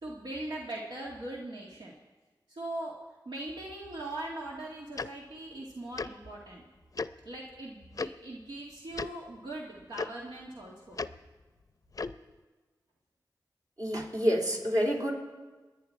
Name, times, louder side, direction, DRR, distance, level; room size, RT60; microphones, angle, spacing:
voice 1, 0.0-1.9 2.5-3.0 3.3-6.6 7.3-11.0, right 1 dB, 80° right, -3 dB, 2.1 m, -40 dB
Tick-tock, 5.0-5.1 6.0-6.1 7.0-7.1 8.0-8.1 8.9-9.1 10.0-10.1 11.0-11.1 11.9-12.2, left 4 dB, 50° left, 0.5 m, -34 dB
voice 2, 13.8-15.1, equal, 55° right, -1 dB, 3.5 m, -28 dB
29.5 x 10.5 x 4.7 m, 1.3 s
wide cardioid pair, 65°, 8 cm